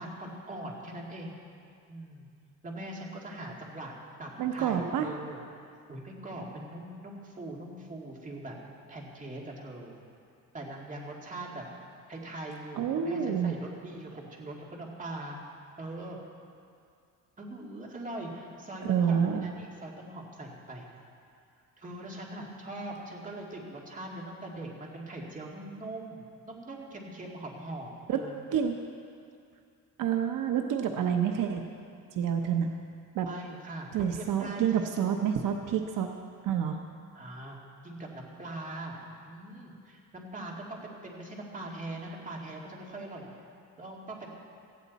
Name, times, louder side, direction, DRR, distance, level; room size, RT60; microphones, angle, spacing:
voice 1, 0.0-1.4 1.9-2.3 2.6-3.9 4.2-5.4 5.9-8.6 8.9-10.0 10.5-11.6 12.1-15.4 15.8-16.2 17.4-20.9 21.8-28.4 33.2-35.1 37.1-37.6 37.8-39.0 39.2-43.3 43.8-44.3, right 1 dB, 25° right, -1 dB, 2.3 m, -41 dB
voice 2, 4.4-5.1 12.7-13.5 18.8-19.5 28.1-28.2 28.5-28.8 30.0-31.6 32.2-32.7 33.1-33.3 33.9-36.1 36.4-36.8, right 8 dB, 75° right, 5 dB, 0.9 m, -28 dB
17.5 x 14.5 x 4.2 m, 2.4 s
cardioid pair, 140°, 32 cm